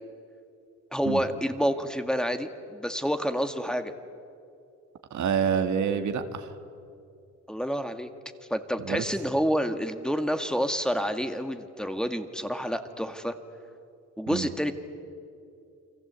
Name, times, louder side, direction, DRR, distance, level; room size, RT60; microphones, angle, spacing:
voice 1, 0.9-3.9 7.5-8.1 8.5-13.4 14.2-14.7, equal, ahead, 7 dB, 1.9 m, -28 dB
voice 2, 5.1-6.5 8.8-9.1 14.3-14.5, right 7 dB, 70° right, 7 dB, 2.1 m, -27 dB
29.5 x 24.0 x 8.2 m, 2.5 s
cardioid pair, 90°, 30 cm